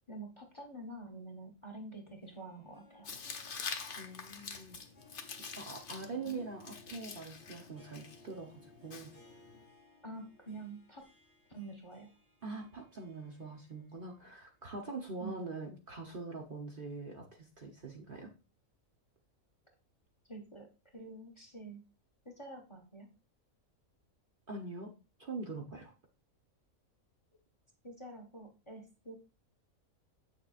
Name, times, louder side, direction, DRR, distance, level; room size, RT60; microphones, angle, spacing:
voice 1, 0.1-3.1 6.2-6.4 10.0-11.0 11.5-12.1 15.2-15.3 20.3-20.7 20.9-21.8 22.2-23.1 27.8-29.1, right 2 dB, 20° left, 2 dB, 1.2 m, -47 dB
Harp, 2.0-14.1 14.4-14.5 15.4-15.5, left 2 dB, 25° right, 3.0 m, -63 dB
Tearing, 3.0-9.7, left 5 dB, 45° left, 0.9 m, -46 dB
voice 2, 4.0-4.8 5.6-9.1 12.4-18.3 24.5-24.9 25.2-25.9, right 3 dB, 45° right, 1 dB, 1.0 m, -43 dB
7.9 x 6.5 x 2.5 m, 0.31 s
omnidirectional pair, 1.5 m